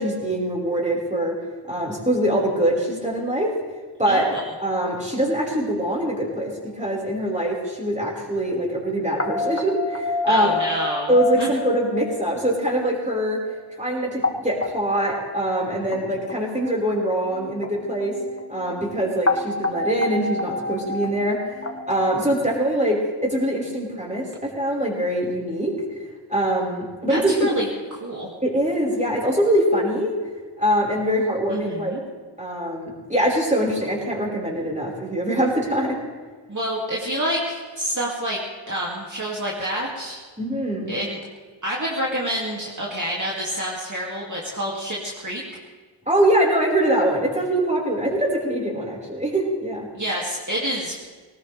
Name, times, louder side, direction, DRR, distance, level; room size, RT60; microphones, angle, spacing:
voice 1, 0.0-1.3 1.7-3.5 4.0-4.3 4.6-10.5 11.1-13.4 13.8-18.1 18.5-21.4 21.9-25.7 26.3-27.5 28.4-30.1 30.6-31.9 32.4-36.0 40.4-40.9 46.1-49.9, right 1 dB, 15° right, -4 dB, 5.1 m, -23 dB
voice 2, 4.1-4.4 10.3-11.5 27.1-27.7 28.0-28.3 31.5-32.0 36.5-38.4 38.7-40.2 40.9-41.2 41.6-45.4 49.9-51.0, equal, 40° right, -5 dB, 2.6 m, -28 dB
sound 1, 4.4-4.5 4.8-5.9 6.5-6.6 6.8-6.9 7.1-7.3 7.6-7.7 7.9-8.2 8.6-13.5 14.0-22.2, left 3 dB, 30° left, 1.2 m, -30 dB
20.5 x 18.5 x 3.5 m, 1.5 s
wide cardioid pair, 55°, 45 cm